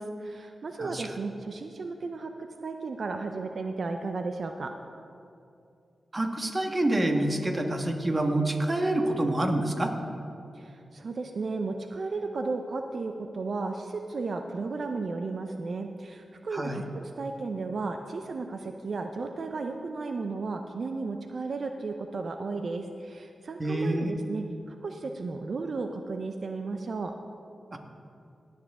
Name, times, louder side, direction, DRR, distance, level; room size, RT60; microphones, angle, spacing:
voice 1, 0.0-4.7 10.5-27.1, right 3 dB, 65° right, 6 dB, 0.5 m, -34 dB
voice 2, 6.1-9.9 16.5-16.8 23.6-24.1 27.7-27.8, right 1 dB, 35° right, 4 dB, 1.5 m, -27 dB
18.0 x 7.3 x 3.7 m, 2.5 s
cardioid pair, 45°, 0 cm